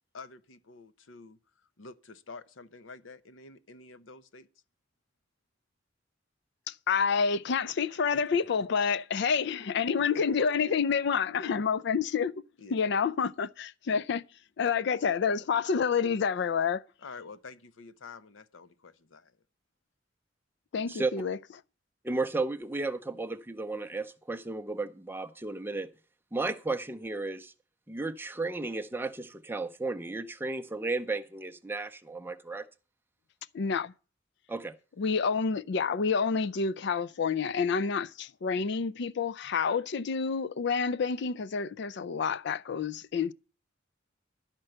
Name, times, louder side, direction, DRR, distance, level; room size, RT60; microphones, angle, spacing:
voice 1, 0.1-4.5 8.1-8.2 10.1-10.2 12.6-12.8 17.0-19.4, left 4 dB, 90° left, 0.7 m, -48 dB
voice 2, 6.7-12.3 12.7-14.2 14.6-16.8 20.7-21.4 33.5-33.9 35.0-43.3, left 6 dB, 65° left, 0.4 m, -28 dB
voice 3, 22.0-25.9 26.3-27.5 27.9-32.7 34.5-34.7, right 3 dB, 10° right, 0.6 m, -34 dB
12.0 x 4.5 x 7.8 m
head